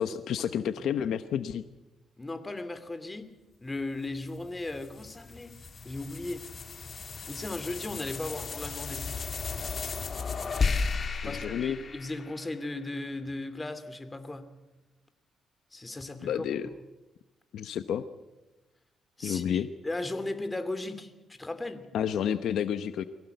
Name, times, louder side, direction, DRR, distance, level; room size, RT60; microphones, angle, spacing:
voice 1, 0.0-1.6 11.2-11.8 16.2-16.6 17.5-18.0 19.2-19.7 21.9-23.0, left 9 dB, 75° left, 11 dB, 0.9 m, -30 dB
voice 2, 2.2-3.3 3.6-6.4 7.2-9.1 11.2-14.5 15.7-16.4 19.2-21.9, left 2 dB, 20° left, 10 dB, 2.5 m, -37 dB
sound 1, 4.2-12.8, left 4 dB, 40° left, 1.8 m, -34 dB
23.5 x 17.0 x 8.1 m, 1.1 s
cardioid pair, 90°, 0 cm